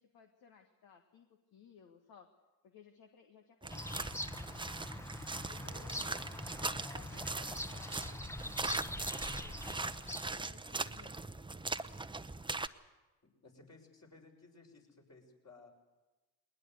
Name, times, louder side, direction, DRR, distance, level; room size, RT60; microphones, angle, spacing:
voice 1, 0.0-2.3 2.6-4.1 5.3-11.3, left 6 dB, 60° left, 5 dB, 1.8 m, -60 dB
sound 1, 3.6-12.7, right 3 dB, 10° right, 0.9 m, -40 dB
Bird vocalization bird call bird song, 3.7-10.5, left 1 dB, 5° left, 1.1 m, -44 dB
voice 2, 13.2-15.7, left 3 dB, 40° left, 1 dB, 6.5 m, -59 dB
20.5 x 20.0 x 8.2 m, 1.1 s
hypercardioid pair, 50°, 41 cm